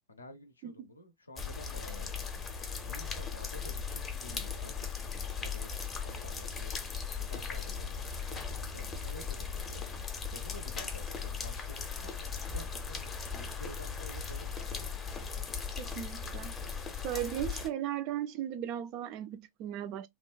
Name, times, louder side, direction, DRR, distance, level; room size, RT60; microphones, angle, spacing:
voice 1, 0.1-2.3 2.9-9.9 10.3-15.5, left 1 dB, 75° left, 0.5 m, -51 dB
sound 1, 1.4-17.7, left 5 dB, 20° left, 0.5 m, -38 dB
voice 2, 15.8-16.5 17.0-20.1, right 11 dB, 40° right, 0.3 m, -36 dB
2.9 x 2.0 x 2.2 m
figure-of-eight pair, 90°, 0 cm